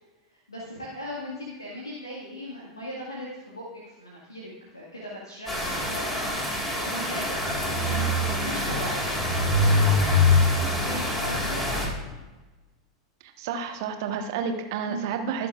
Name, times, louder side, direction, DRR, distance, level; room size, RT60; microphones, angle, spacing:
voice 1, 0.5-6.2 6.6-12.2 14.9-15.1, equal, 85° left, -5 dB, 1.9 m, -39 dB
sound 1, 5.5-11.9, left 2 dB, 15° left, 3.6 m, -24 dB
voice 2, 13.2-15.5, right 6 dB, 55° right, 5 dB, 1.3 m, -30 dB
20.5 x 6.8 x 2.5 m, 1.2 s
figure-of-eight pair, 90°, 2 cm